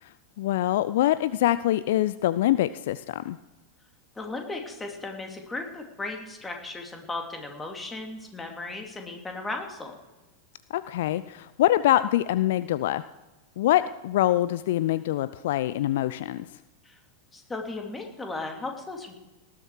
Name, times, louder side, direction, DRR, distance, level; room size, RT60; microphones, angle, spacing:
voice 1, 0.0-3.4 10.7-13.0 13.6-16.5, left 14 dB, 55° left, 16 dB, 0.4 m, -24 dB
voice 2, 4.2-10.0 16.8-17.0 17.3-19.1, left 2 dB, 10° left, 3 dB, 2.6 m, -36 dB
18.5 x 12.0 x 4.7 m, 1.1 s
figure-of-eight pair, 90°, 0 cm